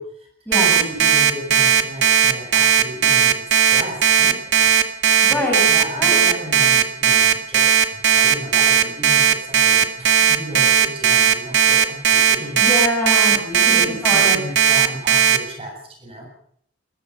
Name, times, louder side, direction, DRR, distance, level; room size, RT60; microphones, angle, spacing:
Alarm, 0.5-15.4, right 8 dB, 70° right, 2.1 m, -15 dB
voice 1, 0.7-4.9 5.3-12.7 13.3-16.3, equal, 30° right, 1 dB, 7.6 m, -34 dB
voice 2, 5.2-5.6 6.0-6.2 12.6-14.4, left 1 dB, 10° left, 0 dB, 6.7 m, -24 dB
22.0 x 21.0 x 5.8 m, 0.65 s
head